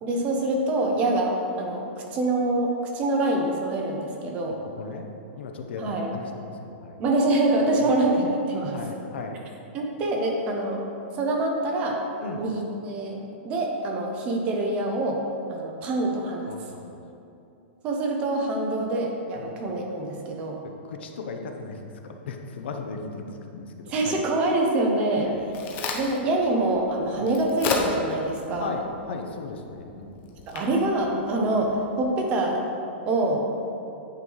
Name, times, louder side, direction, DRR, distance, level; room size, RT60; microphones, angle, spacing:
voice 1, 0.0-4.6 5.8-6.1 7.0-8.8 9.7-10.8 11.1-12.0 12.4-15.2 15.5-16.5 17.8-20.6 23.9-25.3 25.9-28.8 30.5-32.7 33.1-33.4, right 2 dB, 20° right, 1 dB, 0.6 m, -25 dB
voice 2, 4.8-5.1 5.3-7.0 7.8-8.0 8.7-9.4 12.2-12.4 16.5-17.0 19.3-19.6 20.6-24.2 25.2-25.5 28.6-30.2, left 4 dB, 65° left, 4 dB, 0.7 m, -37 dB
Crack, 25.1-32.0, left 3 dB, 25° left, 0.6 m, -35 dB
8.9 x 3.1 x 5.4 m, 2.7 s
supercardioid pair, 175°, 6 cm